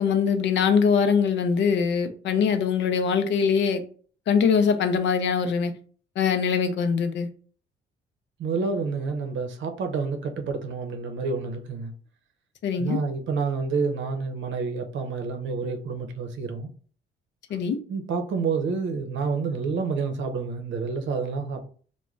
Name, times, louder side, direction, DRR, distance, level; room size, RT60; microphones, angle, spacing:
voice 1, 0.0-3.8 4.3-5.7 6.2-7.3 12.6-13.0 17.5-17.8, left 6 dB, 65° left, 0.5 m, -22 dB
voice 2, 8.4-11.9 12.8-16.7 17.9-21.6, right 4 dB, 70° right, 0.7 m, -28 dB
2.4 x 2.1 x 3.1 m
cardioid pair, 90°, 20 cm